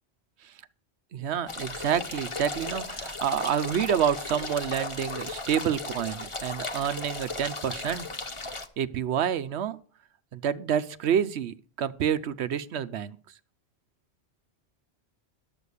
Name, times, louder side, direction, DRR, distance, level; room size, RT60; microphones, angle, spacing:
voice 1, 1.1-8.1 8.8-9.8 10.3-13.2, right 8 dB, 80° right, 13 dB, 0.9 m, -28 dB
sound 1, 1.5-8.7, left 3 dB, 30° left, 1.0 m, -36 dB
12.0 x 7.0 x 6.5 m, 0.43 s
omnidirectional pair, 1.1 m